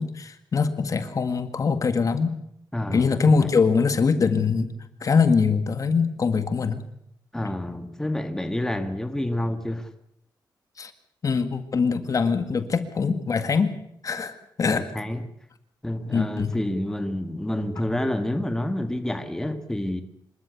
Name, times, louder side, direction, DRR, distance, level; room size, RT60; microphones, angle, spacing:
voice 1, 0.0-2.3 2.9-4.7 5.0-6.8 10.8-10.9 11.2-13.7 14.0-14.9 16.1-16.6, left 5 dB, 45° left, 1.9 m, -23 dB
voice 2, 2.7-3.5 7.3-9.9 14.6-15.2 15.8-20.0, left 1 dB, 5° left, 1.8 m, -28 dB
26.5 x 13.5 x 8.2 m
cardioid pair, 105°, 8 cm